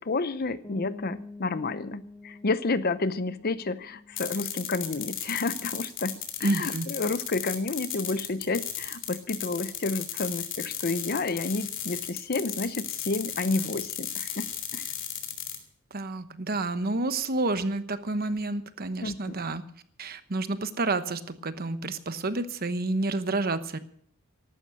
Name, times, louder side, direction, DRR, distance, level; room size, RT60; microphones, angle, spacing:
voice 1, 0.0-6.1 6.4-14.5 14.7-14.9 19.0-19.4, left 3 dB, 45° left, 14 dB, 0.7 m, -30 dB
sound 1, 0.6-6.2, left 3 dB, 20° left, 1.9 m, -47 dB
sound 2, 4.2-15.6, left 10 dB, 60° left, 2.9 m, -35 dB
voice 2, 6.4-6.9 15.9-19.6 20.0-23.8, right 2 dB, 45° right, 11 dB, 1.0 m, -29 dB
14.0 x 12.0 x 6.4 m, 0.62 s
head